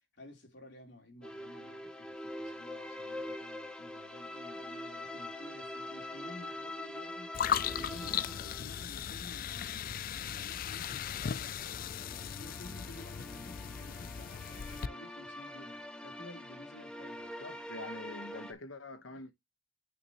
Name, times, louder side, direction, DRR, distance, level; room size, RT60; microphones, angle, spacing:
voice 1, 0.0-7.3 7.7-11.5 12.0-17.3, left 2 dB, 60° left, 3.3 m, -53 dB
sound 1, 1.2-9.2 9.5-9.6 11.4-18.5, left 1 dB, 5° left, 0.9 m, -44 dB
sound 2, 7.3-14.9, left 9 dB, 45° left, 0.3 m, -37 dB
voice 2, 17.4-19.3, left 2 dB, 80° left, 1.3 m, -45 dB
9.1 x 6.0 x 3.0 m
head